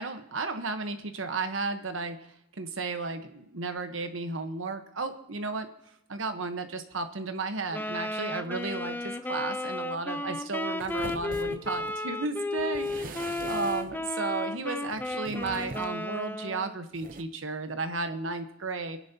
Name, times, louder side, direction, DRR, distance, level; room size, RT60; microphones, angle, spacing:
voice 1, 0.0-2.2 2.6-5.7 6.1-19.0, right 3 dB, 85° right, 7 dB, 1.1 m, -34 dB
Wind instrument woodwind instrument, 7.7-16.8, left 2 dB, 10° left, 0.5 m, -34 dB
sound 1, 10.8-12.0 12.6-14.0 14.9-16.0 16.9-17.2, right 3 dB, 45° right, 0.8 m, -43 dB
29.5 x 10.5 x 2.9 m, 0.81 s
head